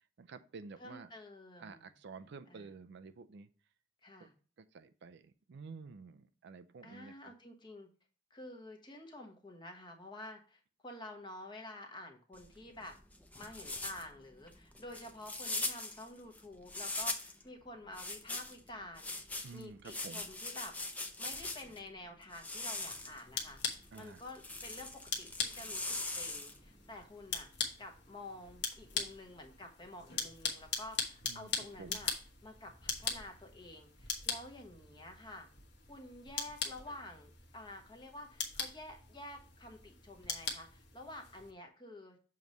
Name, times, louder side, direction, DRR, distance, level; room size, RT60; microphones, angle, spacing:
voice 1, 0.2-1.1 1.6-3.5 4.7-7.3 19.4-20.3 23.9-24.2 31.2-31.5 31.8-32.0, right 4 dB, 60° right, 10 dB, 0.4 m, -50 dB
voice 2, 0.8-1.9 2.5-2.7 4.0-4.3 6.8-7.9 8.3-13.0 13.3-19.2 19.5-20.8 21.2-27.5 27.8-32.1 32.4-35.5 35.9-42.2, left 1 dB, 25° left, 3 dB, 1.1 m, -50 dB
sound 1, 12.3-17.4 17.9-21.8 22.3-26.7, left 2 dB, 10° left, 0.6 m, -41 dB
sound 2, 22.7-41.5, left 6 dB, 60° left, 1.3 m, -42 dB
7.1 x 3.1 x 5.2 m, 0.38 s
head